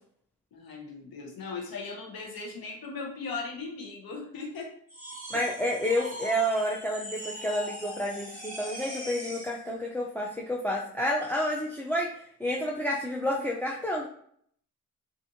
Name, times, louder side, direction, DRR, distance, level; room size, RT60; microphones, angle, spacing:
voice 1, 0.5-4.7, left 4 dB, 70° left, 0 dB, 0.8 m, -38 dB
sound 1, 4.9-9.6, equal, 20° right, 1.2 m, -41 dB
voice 2, 5.3-14.1, equal, 5° left, -3 dB, 0.4 m, -30 dB
2.5 x 2.4 x 2.7 m, 0.62 s
supercardioid pair, 50°, 38 cm